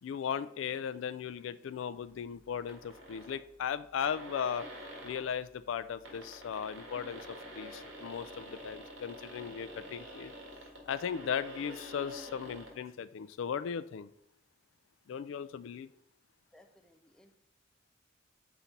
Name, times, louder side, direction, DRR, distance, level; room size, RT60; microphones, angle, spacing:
voice 1, 0.0-4.7 5.0-10.3 10.9-14.1 15.1-15.9, left 7 dB, 80° left, 0.3 m, -37 dB
sound 1, 2.7-3.4 3.7-3.8 4.0-5.3 5.9-12.7, equal, 75° right, 1.8 m, -47 dB
voice 2, 16.5-17.4, left 1 dB, 5° left, 0.5 m, -62 dB
5.9 x 4.3 x 5.1 m
head